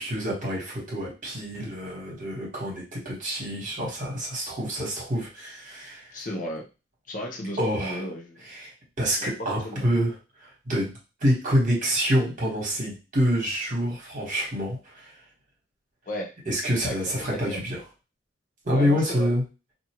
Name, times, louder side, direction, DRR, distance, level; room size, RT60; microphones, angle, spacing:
voice 1, 0.0-6.1 7.6-8.0 8.5-8.7 9.0-10.1 10.4-10.9 11.2-15.1 16.5-17.8 18.6-19.4, equal, 45° right, -3 dB, 1.2 m, -27 dB
voice 2, 6.1-6.7 7.1-8.4 9.2-9.9 16.1-16.3 16.8-17.0 17.3-17.6 18.7-19.3, equal, 45° left, 1 dB, 0.7 m, -34 dB
2.6 x 2.4 x 2.9 m, 0.30 s
head